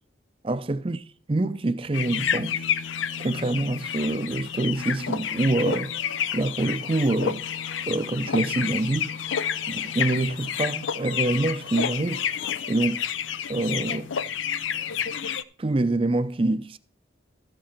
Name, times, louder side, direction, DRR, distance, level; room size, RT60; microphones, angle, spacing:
voice 1, 0.4-1.0 1.3-2.6 3.2-5.9 6.3-7.5 7.9-9.2 9.7-12.3 12.7-13.1 13.5-14.1 15.6-16.8, right 2 dB, 30° right, 0.5 m, -26 dB
sound 1, 1.9-15.4, left 8 dB, 85° left, 0.5 m, -30 dB
13.5 x 7.3 x 4.4 m
head